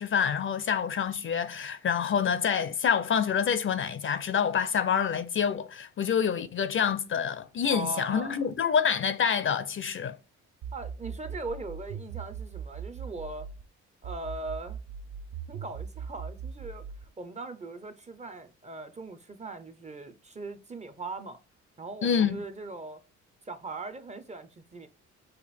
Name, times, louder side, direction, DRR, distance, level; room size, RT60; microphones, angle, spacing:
voice 1, 0.0-10.2 22.0-22.4, left 7 dB, 40° left, 0.5 m, -27 dB
voice 2, 7.7-8.4 10.7-13.5 14.0-14.8 15.5-21.4 21.8-23.0 23.4-24.9, right 3 dB, 25° right, 0.6 m, -40 dB
sound 1, 10.6-13.6 14.0-17.1, right 7 dB, 75° right, 0.6 m, -39 dB
5.1 x 2.5 x 4.1 m
cardioid pair, 90°, 30 cm